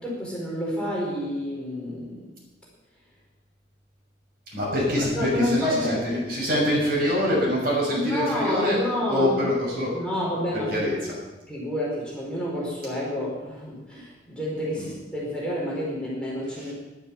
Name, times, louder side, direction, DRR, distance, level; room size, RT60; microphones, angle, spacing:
voice 1, 0.0-2.2 5.0-6.2 7.9-9.3 9.9-10.7 11.5-16.7, left 1 dB, 5° left, -6 dB, 4.5 m, -29 dB
voice 2, 4.5-8.8 9.1-10.0 10.5-11.1 14.8-14.9 16.5-16.7, left 1 dB, 55° right, -4 dB, 6.6 m, -25 dB
12.0 x 11.5 x 7.2 m, 1.1 s
head